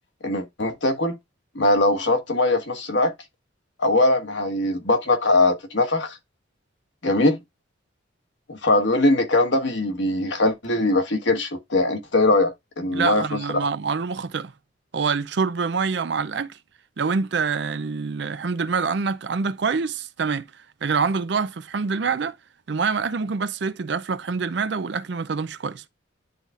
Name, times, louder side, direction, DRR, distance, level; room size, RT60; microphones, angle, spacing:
voice 1, 0.2-1.2 1.5-3.1 3.8-6.2 7.0-7.4 8.5-13.4, left 2 dB, 70° left, 1.4 m, -21 dB
voice 2, 12.9-14.5 14.9-16.6 17.0-20.5 20.8-22.4 22.7-25.9, right 5 dB, 60° right, 0.5 m, -26 dB
11.0 x 4.0 x 2.4 m
head